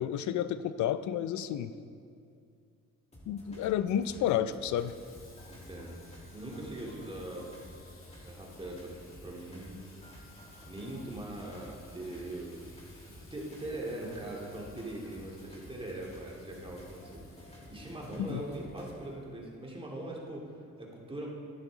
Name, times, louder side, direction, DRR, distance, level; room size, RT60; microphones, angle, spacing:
voice 1, 0.0-1.7 3.3-4.9 18.2-18.4, left 10 dB, 70° left, 13 dB, 0.5 m, -31 dB
sound 1, 3.1-19.1, equal, 20° left, 2.5 m, -52 dB
Water tap faucet / Sink (filling or washing), 4.8-19.5, left 3 dB, 45° left, 2.3 m, -60 dB
voice 2, 5.5-6.1 6.3-7.5 8.2-9.9 10.6-12.8 13.3-21.3, right 1 dB, 20° right, -2 dB, 2.3 m, -41 dB
11.5 x 9.8 x 4.0 m, 2.4 s
cardioid pair, 90°, 30 cm